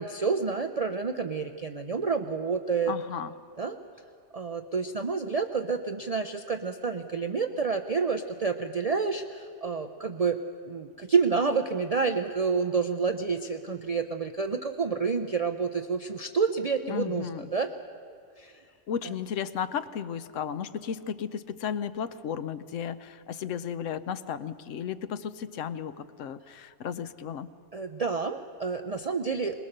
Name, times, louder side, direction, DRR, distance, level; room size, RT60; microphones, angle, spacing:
voice 1, 0.0-2.9 3.6-3.8 4.3-10.4 10.7-17.7 18.4-18.6 19.0-19.1 27.7-29.7, right 5 dB, 40° right, 7 dB, 0.6 m, -29 dB
voice 2, 2.9-3.3 16.9-17.5 18.9-27.5, left 8 dB, 80° left, 13 dB, 1.1 m, -34 dB
21.5 x 21.0 x 6.7 m, 2.3 s
omnidirectional pair, 1.3 m